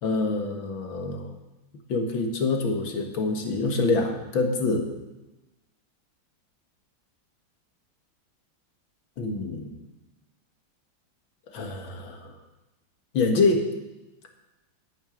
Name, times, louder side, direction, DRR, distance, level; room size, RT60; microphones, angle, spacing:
voice 1, 0.0-1.3 1.9-4.9 9.2-9.7 11.5-12.3 13.1-13.6, left 3 dB, 80° left, 3 dB, 2.4 m, -26 dB
11.0 x 9.3 x 9.0 m, 1.0 s
omnidirectional pair, 2.1 m